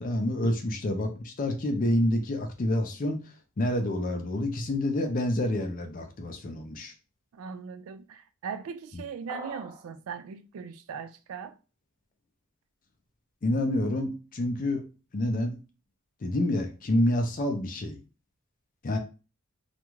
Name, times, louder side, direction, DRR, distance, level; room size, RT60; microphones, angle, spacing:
voice 1, 0.0-3.2 3.6-6.9 13.4-14.8 15.1-15.5 16.2-18.0 18.8-19.0, left 1 dB, 40° left, 0.4 m, -28 dB
voice 2, 7.3-11.6, right 6 dB, 75° right, 0.3 m, -39 dB
sound 1, 9.3-9.9, right 3 dB, 20° right, 0.5 m, -41 dB
2.4 x 2.2 x 3.0 m
head